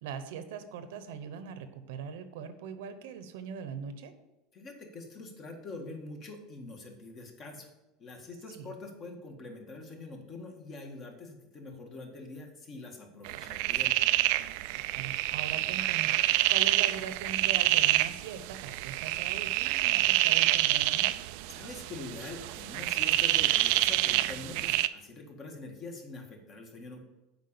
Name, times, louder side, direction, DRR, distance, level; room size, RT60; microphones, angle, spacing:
voice 1, 0.0-4.1 8.5-8.7 14.9-21.3, right 6 dB, 85° right, 10 dB, 1.0 m, -41 dB
voice 2, 4.5-7.7 8.0-14.0 21.5-27.1, left 2 dB, 35° left, 2 dB, 1.8 m, -44 dB
sound 1, 13.2-24.9, right 16 dB, 65° right, 0.4 m, -27 dB
8.2 x 5.0 x 6.9 m, 1.0 s
supercardioid pair, 145°, 0 cm